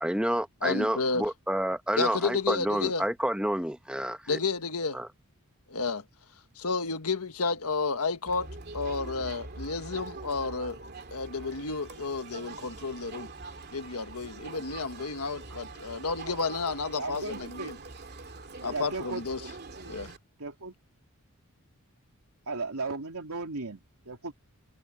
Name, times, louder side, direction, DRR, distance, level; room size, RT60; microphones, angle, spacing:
voice 1, 0.0-4.4 4.9-5.1, right 1 dB, 5° right, 1.0 m, -29 dB
voice 2, 0.6-1.3 2.0-3.0 4.3-5.0 5.7-6.0 6.5-10.8 11.1-13.3 13.7-17.8 18.6-19.4 19.9-20.1, left 4 dB, 80° left, 1.5 m, -31 dB
Crowd, 8.3-20.2, right 3 dB, 45° right, 2.6 m, -44 dB
voice 3, 15.5-15.8 16.2-16.4 17.0-17.7 18.7-19.5 20.4-20.7 22.5-24.3, right 3 dB, 80° right, 2.9 m, -36 dB
head